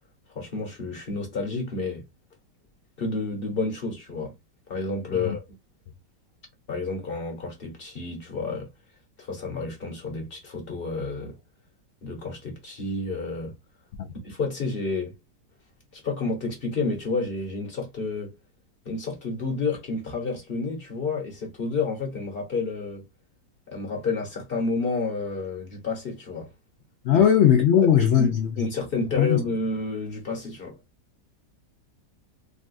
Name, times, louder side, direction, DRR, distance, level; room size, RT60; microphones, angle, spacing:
voice 1, 0.3-2.0 3.0-4.3 4.7-5.4 6.7-8.7 9.2-11.4 12.0-13.5 14.2-15.1 15.9-18.4 18.8-23.0 23.7-26.5 27.1-27.2 28.2-30.8, left 3 dB, 40° left, 1.0 m, -30 dB
voice 2, 27.0-28.7 29.2-29.4, left 9 dB, 90° left, 0.6 m, -19 dB
3.9 x 2.3 x 2.5 m
omnidirectional pair, 1.9 m